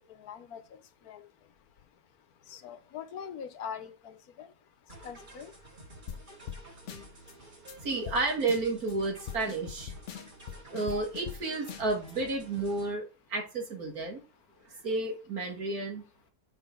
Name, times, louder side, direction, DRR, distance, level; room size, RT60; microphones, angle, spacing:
voice 1, 0.1-0.6 1.1-1.2 2.5-4.5 5.0-5.5, left 7 dB, 85° left, 1.4 m, -42 dB
sound 1, 4.9-12.9, right 1 dB, 35° right, 2.1 m, -51 dB
sound 2, 6.1-6.2 6.5-6.6 6.9-7.3 7.7-7.8 8.1-8.2 8.5-8.9 9.3-11.4 11.7-12.1, left 8 dB, 60° left, 1.0 m, -41 dB
voice 2, 7.8-9.9 10.7-13.0 13.3-14.2 14.8-16.0, right 3 dB, 80° right, 2.6 m, -31 dB
5.8 x 5.5 x 4.4 m
omnidirectional pair, 1.6 m